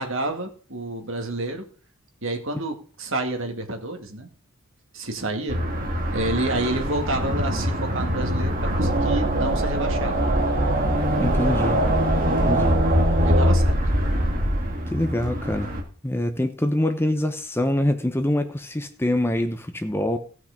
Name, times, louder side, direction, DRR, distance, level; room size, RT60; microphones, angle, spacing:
voice 1, 0.0-1.6 2.2-4.3 4.9-5.6 6.1-10.3 13.3-13.8, right 2 dB, 60° right, 4 dB, 2.1 m, -29 dB
sound 1, 5.5-15.8, right 1 dB, 40° right, 2.2 m, -22 dB
voice 2, 11.2-11.8 12.2-12.8 14.9-15.7 16.0-20.2, left 1 dB, 10° left, 8 dB, 0.8 m, -25 dB
16.0 x 6.0 x 5.2 m, 0.40 s
head